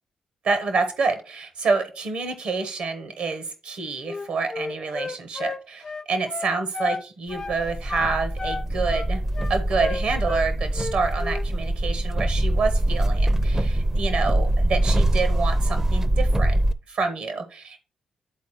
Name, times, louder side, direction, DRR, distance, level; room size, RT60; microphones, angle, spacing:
voice 1, 0.4-9.2 9.5-16.6 16.9-17.8, right 4 dB, 70° right, 9 dB, 1.1 m, -27 dB
Wind instrument woodwind instrument, 4.0-7.0 7.3-7.6 7.9-10.5 10.7-11.5, left 4 dB, 35° left, 0.3 m, -33 dB
sound 1, 7.4-16.7, right 1 dB, 25° right, 0.5 m, -23 dB
10.5 x 4.1 x 3.1 m, 0.35 s
supercardioid pair, 45°, 2 cm